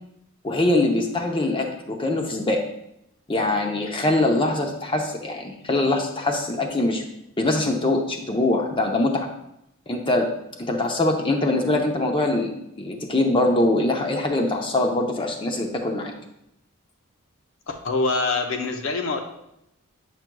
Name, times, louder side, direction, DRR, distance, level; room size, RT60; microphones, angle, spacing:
voice 1, 0.4-2.6 3.3-7.0 7.4-9.3 9.9-10.3 10.7-16.1, left 2 dB, 25° left, 2 dB, 0.7 m, -23 dB
voice 2, 17.7-19.2, left 3 dB, 65° left, 4 dB, 0.7 m, -25 dB
9.1 x 6.0 x 2.3 m, 0.81 s
head